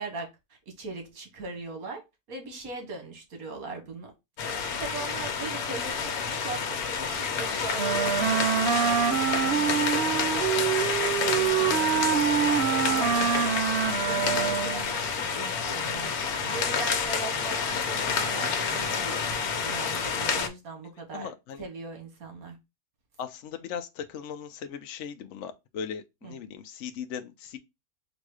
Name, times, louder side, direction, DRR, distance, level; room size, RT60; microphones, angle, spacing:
voice 1, 0.0-2.0 2.3-4.1 4.4-10.8 11.2-13.6 14.0-21.3 21.6-22.6 26.2-26.3, right 3 dB, 75° right, 1.6 m, -40 dB
sound 1, 4.4-20.5, left 5 dB, 80° left, 1.3 m, -29 dB
Wind instrument woodwind instrument, 7.8-14.9, right 8 dB, 60° right, 0.8 m, -26 dB
voice 2, 21.1-21.7 23.2-27.6, left 7 dB, 65° left, 0.8 m, -38 dB
3.9 x 2.6 x 4.7 m
omnidirectional pair, 1.5 m